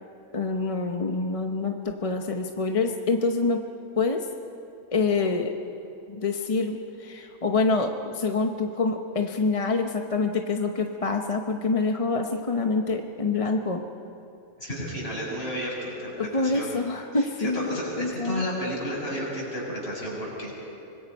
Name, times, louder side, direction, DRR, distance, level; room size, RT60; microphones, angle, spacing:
voice 1, 0.3-3.6 4.0-4.3 4.9-5.5 6.1-13.8 16.2-18.4, left 3 dB, 30° left, 4 dB, 0.8 m, -26 dB
voice 2, 14.6-16.8 17.1-20.6, equal, 45° left, -5 dB, 6.9 m, -32 dB
25.0 x 21.0 x 5.4 m, 2.8 s
omnidirectional pair, 1.5 m